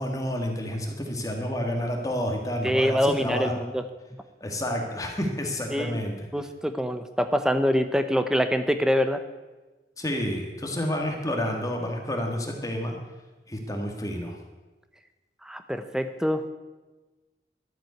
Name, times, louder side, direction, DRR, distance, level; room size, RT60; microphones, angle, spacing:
voice 1, 0.0-3.5 4.4-6.1 10.0-13.0 13.5-14.4, equal, 20° left, 2 dB, 1.6 m, -29 dB
voice 2, 2.6-3.8 5.7-6.0 6.3-9.2 15.4-16.5, equal, 5° right, 9 dB, 0.8 m, -25 dB
12.5 x 7.6 x 9.3 m, 1.2 s
head